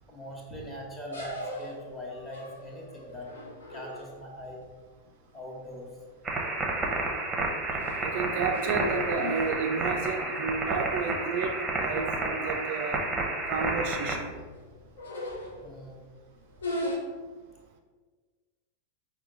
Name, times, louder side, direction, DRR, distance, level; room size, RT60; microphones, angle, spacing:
voice 1, 0.1-3.3 3.7-4.6 5.3-5.9 15.4-16.0, left 1 dB, 15° left, -2 dB, 1.1 m, -42 dB
sound 1, 1.1-4.4 6.1-6.3 6.8-7.1 7.5-10.1 10.5-10.6 10.9-11.0 11.8-11.9 12.2-12.4 12.7-13.1 13.7-15.9 16.5-17.0, left 1 dB, 70° left, 0.8 m, -38 dB
sound 2, 6.2-14.2, right 2 dB, 15° right, 0.7 m, -31 dB
voice 2, 8.0-13.0 13.5-14.3, right 5 dB, 50° right, 4 dB, 0.3 m, -31 dB
5.5 x 2.2 x 3.9 m, 1.5 s
figure-of-eight pair, 90°, 0 cm